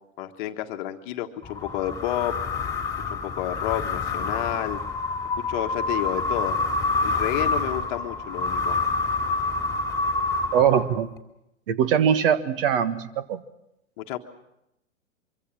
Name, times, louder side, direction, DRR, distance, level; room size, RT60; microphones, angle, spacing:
voice 1, 0.2-2.3 3.1-4.8 5.5-6.6 7.0-8.8 14.0-14.2, left 13 dB, 35° left, 6 dB, 1.5 m, -30 dB
sound 1, 1.4-11.2, left 3 dB, 10° left, 2.8 m, -27 dB
voice 2, 10.5-11.1 11.7-13.4, right 8 dB, 45° right, 12 dB, 1.6 m, -22 dB
24.0 x 24.0 x 6.3 m, 0.85 s
figure-of-eight pair, 105°, 39 cm